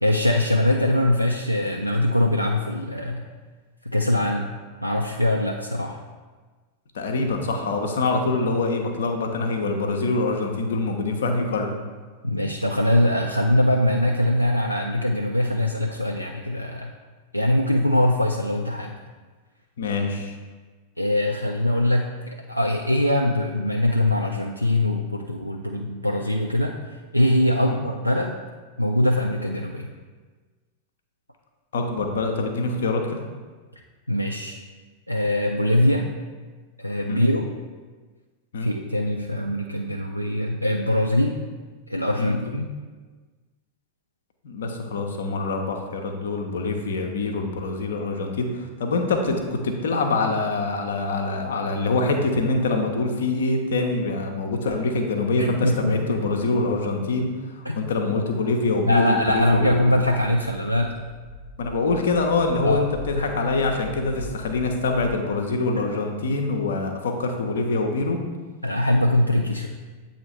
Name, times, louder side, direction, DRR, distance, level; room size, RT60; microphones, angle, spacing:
voice 1, 0.0-3.2 3.8-4.5 4.8-6.0 12.2-16.9 17.3-19.0 21.0-28.4 28.8-29.9 34.1-34.6 35.1-36.1 36.8-37.5 38.6-41.4 41.9-42.7 55.4-56.2 57.6-57.8 58.9-61.0 62.6-62.8 63.1-63.3 68.6-69.7, left 1 dB, 90° left, 1 dB, 0.3 m, -22 dB
voice 2, 6.9-11.7 19.8-20.3 27.6-27.8 31.7-33.2 37.1-37.2 38.5-38.7 42.2-42.4 44.4-57.3 57.7-59.9 61.6-62.9 63.2-68.2, left 3 dB, 60° left, 3 dB, 0.7 m, -25 dB
sound 1, 61.5-65.1, left 2 dB, 70° right, 0.6 m, -41 dB
7.8 x 2.9 x 4.3 m, 1.4 s
figure-of-eight pair, 90°, 0 cm